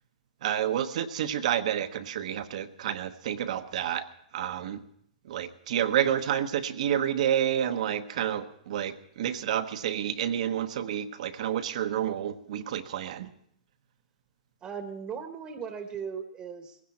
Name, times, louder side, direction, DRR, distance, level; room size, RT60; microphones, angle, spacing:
voice 1, 0.4-4.1 4.3-4.8 5.3-13.3, right 10 dB, 60° right, 9 dB, 1.1 m, -29 dB
voice 2, 14.6-16.8, right 6 dB, 20° right, 7 dB, 1.2 m, -38 dB
18.5 x 16.0 x 4.3 m, 0.69 s
hypercardioid pair, 140°, 4 cm